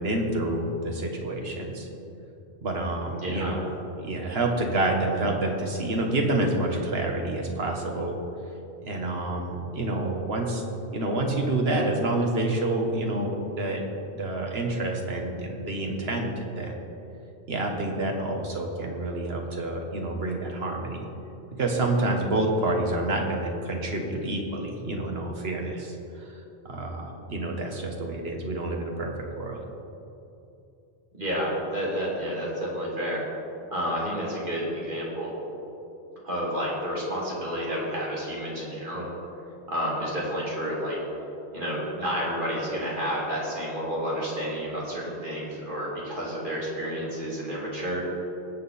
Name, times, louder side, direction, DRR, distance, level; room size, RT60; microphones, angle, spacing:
voice 1, 0.0-1.9 2.6-3.7 4.0-8.2 8.8-10.6 10.9-13.9 14.1-16.8 17.5-21.1 21.6-29.6, right 2 dB, 70° right, 1 dB, 1.7 m, -28 dB
voice 2, 3.2-3.5 31.1-33.2 33.7-35.3 36.2-39.1 39.7-41.0 41.5-48.0, equal, 50° right, -5 dB, 2.9 m, -30 dB
19.0 x 7.6 x 4.3 m, 2.8 s
omnidirectional pair, 1.1 m